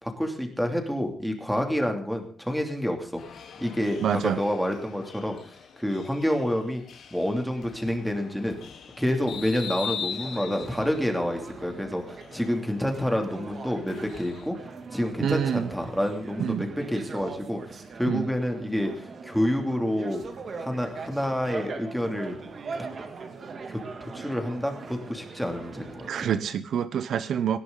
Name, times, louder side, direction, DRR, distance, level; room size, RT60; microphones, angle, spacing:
voice 1, 0.0-3.2 3.6-6.8 7.1-8.6 9.0-14.6 14.9-20.2 20.6-22.4 23.7-26.3, equal, ahead, 3 dB, 2.9 m, -28 dB
sound 1, 3.2-14.5, left 7 dB, 70° left, 3.6 m, -42 dB
voice 2, 4.0-4.4 15.2-15.7 16.4-16.6 18.1-18.3 26.1-27.6, right 8 dB, 70° right, 13 dB, 0.9 m, -26 dB
sound 2, 10.1-26.4, right 4 dB, 45° right, 2.7 m, -41 dB
19.0 x 17.5 x 4.0 m, 0.43 s
cardioid pair, 145°, 0 cm